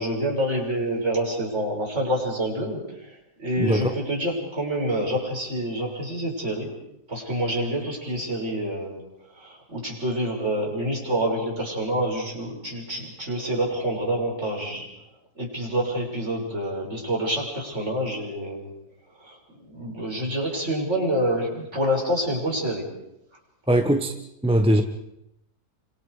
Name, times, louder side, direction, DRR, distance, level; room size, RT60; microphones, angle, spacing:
voice 1, 0.0-6.7 7.1-9.0 9.3-14.9 15.4-18.7 19.2-19.4 19.6-22.9, right 1 dB, 40° right, -1 dB, 7.1 m, -27 dB
voice 2, 3.6-3.9 23.7-24.1 24.4-24.8, right 1 dB, 5° right, 5 dB, 1.1 m, -20 dB
30.0 x 26.0 x 5.1 m, 0.82 s
omnidirectional pair, 1.8 m